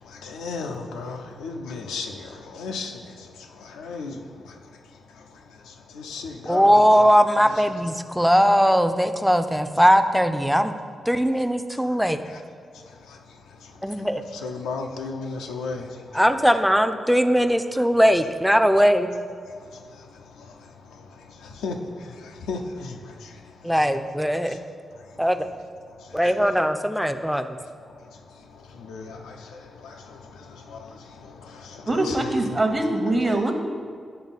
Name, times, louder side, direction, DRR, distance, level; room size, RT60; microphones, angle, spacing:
voice 1, 0.2-2.2 2.5-2.9 3.8-4.2 6.0-7.1 7.4-7.5 14.4-15.9 21.6-21.7 22.5-23.0 28.9-29.2 31.9-32.6, left 4 dB, 90° left, 3 dB, 0.4 m, -33 dB
voice 2, 6.5-10.7 11.1-12.2 13.8-14.2 16.1-19.1 23.6-24.6 25.2-25.5 26.1-27.5, equal, ahead, 8 dB, 0.4 m, -19 dB
voice 3, 31.9-33.5, right 2 dB, 35° right, 4 dB, 0.9 m, -23 dB
8.7 x 3.4 x 4.1 m, 2.1 s
supercardioid pair, 45°, 0 cm